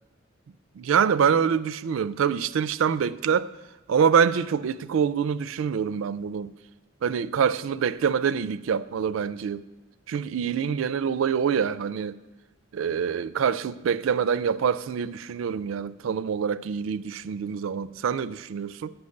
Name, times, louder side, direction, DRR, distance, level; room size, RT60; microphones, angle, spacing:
voice 1, 0.8-3.5 3.9-6.5 7.0-9.6 10.1-12.2 12.7-18.9, right 7 dB, 85° right, 0.4 m, -25 dB
9.6 x 6.1 x 6.4 m
head